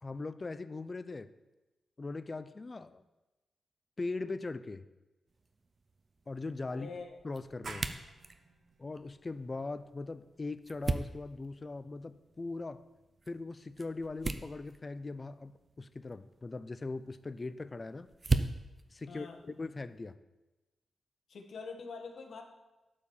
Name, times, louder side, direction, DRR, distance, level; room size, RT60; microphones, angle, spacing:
voice 1, 0.0-1.3 2.0-3.0 4.0-4.8 6.3-6.9 7.2-7.9 8.8-12.8 13.3-18.1 18.9-20.2, left 3 dB, 30° left, 13 dB, 0.5 m, -40 dB
sound 1, 5.3-20.1, right 3 dB, 35° right, 0.7 m, -41 dB
voice 2, 6.7-7.2 19.1-19.4 21.3-22.4, left 4 dB, 70° left, 3 dB, 1.5 m, -44 dB
sound 2, 7.6-13.0, right 3 dB, 55° right, 1.1 m, -53 dB
12.0 x 4.7 x 7.2 m, 1.1 s
cardioid pair, 100°, 0 cm